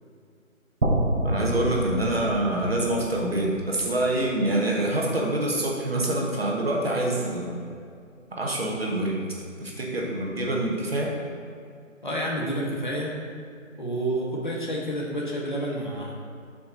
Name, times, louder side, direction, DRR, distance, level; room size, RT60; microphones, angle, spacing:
sound 1, 0.8-4.8, right 1 dB, 65° right, 1.3 m, -29 dB
voice 1, 1.2-7.6 8.3-9.2 9.6-11.2, right 1 dB, 45° right, -2 dB, 1.6 m, -26 dB
voice 2, 12.0-13.1 13.8-16.1, right 1 dB, 35° left, -2 dB, 1.3 m, -29 dB
11.5 x 5.7 x 4.0 m, 2.3 s
figure-of-eight pair, 175°, 41 cm